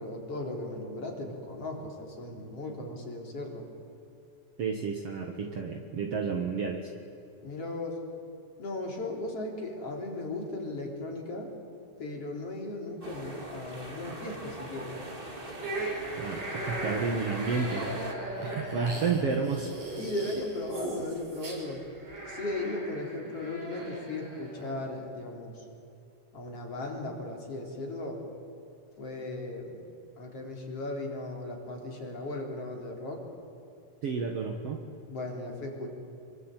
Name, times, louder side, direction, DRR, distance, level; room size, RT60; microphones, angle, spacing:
voice 1, 0.0-3.7 7.4-8.0 8.6-11.5 12.0-15.0 18.9-19.0 20.0-21.8 22.3-25.6 26.3-28.2 29.0-29.8 30.2-33.2 35.1-35.9, left 2 dB, 45° left, 1 dB, 4.8 m, -37 dB
voice 2, 4.6-6.9 16.2-17.9 18.4-19.7 34.0-34.8, right 5 dB, 55° right, 2 dB, 2.3 m, -31 dB
sound 1, 13.0-18.1, right 1 dB, 20° right, 2.3 m, -42 dB
sound 2, 15.6-24.8, right 1 dB, 85° right, 8.1 m, -38 dB
26.0 x 23.0 x 9.1 m, 2.7 s
omnidirectional pair, 3.7 m